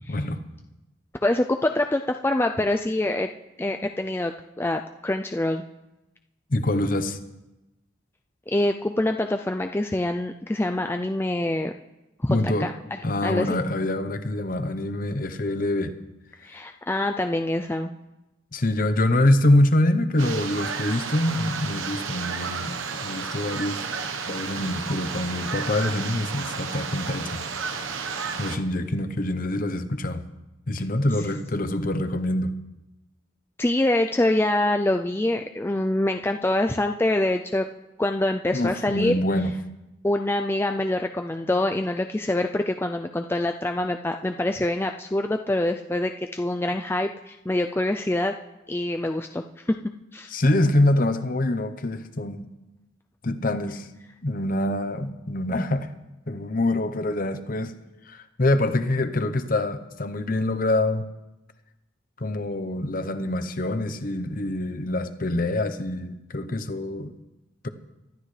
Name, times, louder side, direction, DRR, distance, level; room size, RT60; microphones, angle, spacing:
voice 1, 0.1-0.4 6.5-7.2 12.3-12.7 13.0-15.9 18.5-23.8 24.3-27.8 28.4-30.2 30.7-32.5 38.5-39.5 50.3-52.5 53.2-53.9 54.2-55.9 56.3-57.7 58.1-61.0 62.2-67.1 67.6-67.7, left 1 dB, 45° left, 10 dB, 0.9 m, -25 dB
voice 2, 1.2-3.3 3.6-5.6 8.5-11.7 12.2-13.5 16.4-17.9 33.6-37.7 38.0-39.2 40.0-48.3 48.7-49.8 50.1-50.3, left 1 dB, 10° left, 5 dB, 0.4 m, -25 dB
sound 1, 20.2-28.6, right 5 dB, 85° right, 1.1 m, -32 dB
24.5 x 12.5 x 3.3 m, 0.99 s
head